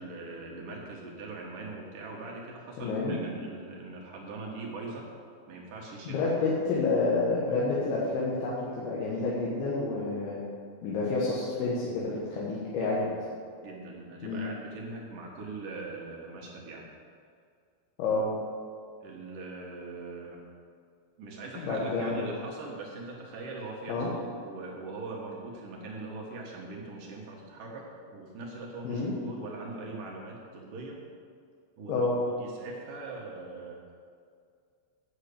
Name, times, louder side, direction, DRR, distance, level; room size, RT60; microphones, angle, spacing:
voice 1, 0.0-5.1 5.5-6.3 12.7-13.2 13.6-16.9 19.0-20.4 21.2-31.0 31.8-32.1 32.4-33.9, right 3 dB, 65° right, -2 dB, 2.3 m, -41 dB
voice 2, 2.8-3.2 6.1-10.4 10.8-13.0 14.2-14.4 18.0-18.3 21.6-22.3 23.9-24.1 28.9-29.1 31.9-32.2, left 3 dB, 85° left, -6 dB, 3.8 m, -29 dB
8.9 x 6.5 x 8.3 m, 2.2 s
omnidirectional pair, 5.1 m